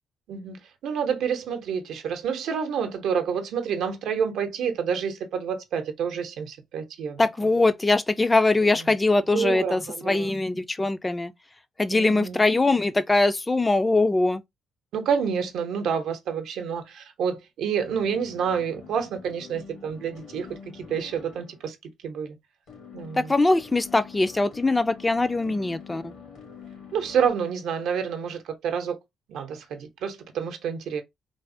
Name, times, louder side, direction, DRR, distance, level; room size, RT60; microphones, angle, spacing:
voice 1, 0.8-7.2 9.3-10.3 11.9-12.4 14.9-21.8 22.0-22.4 22.9-23.3 25.5-26.0 26.9-29.0 29.3-31.0, right 7 dB, 75° right, 0.7 m, -28 dB
voice 2, 7.2-11.3 11.8-14.4 23.2-26.1, left 2 dB, 20° left, 0.3 m, -22 dB
sound 1, 17.8-21.7 22.7-27.3, left 6 dB, 80° left, 1.6 m, -46 dB
3.3 x 2.0 x 2.5 m
cardioid pair, 90°, 0 cm